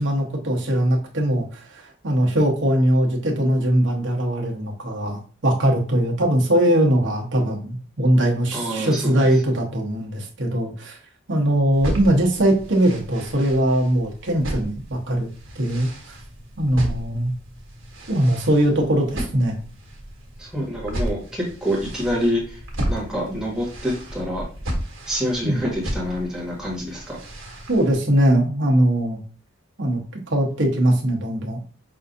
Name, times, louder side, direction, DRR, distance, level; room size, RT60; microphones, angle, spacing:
voice 1, 0.0-11.0 11.3-15.3 15.5-15.9 16.6-17.3 18.1-19.6 25.4-25.6 27.7-29.2 29.8-30.0 30.3-31.6, right 1 dB, 65° right, 0 dB, 1.0 m, -21 dB
voice 2, 8.5-9.1 20.4-22.6 22.9-24.4 25.1-27.2, equal, 5° right, -5 dB, 1.4 m, -26 dB
sound 1, 11.7-28.0, equal, 85° right, 1.3 m, -34 dB
5.5 x 2.6 x 2.6 m, 0.40 s
head